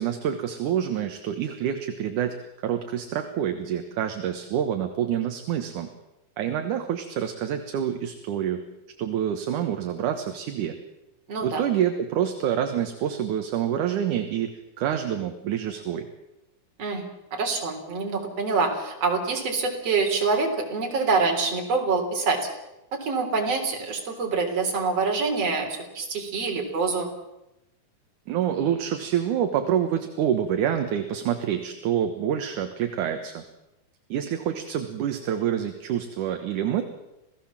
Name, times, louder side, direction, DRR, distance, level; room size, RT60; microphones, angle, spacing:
voice 1, 0.0-2.4 2.6-5.9 6.4-8.7 9.0-10.8 11.4-14.5 14.8-16.1 28.3-33.4 34.1-36.8, right 9 dB, 65° right, 6 dB, 2.5 m, -27 dB
voice 2, 11.3-11.6 16.8-17.0 17.3-22.4 22.9-27.1, right 4 dB, 40° right, 3 dB, 4.5 m, -26 dB
27.5 x 17.5 x 7.4 m, 0.94 s
omnidirectional pair, 4.4 m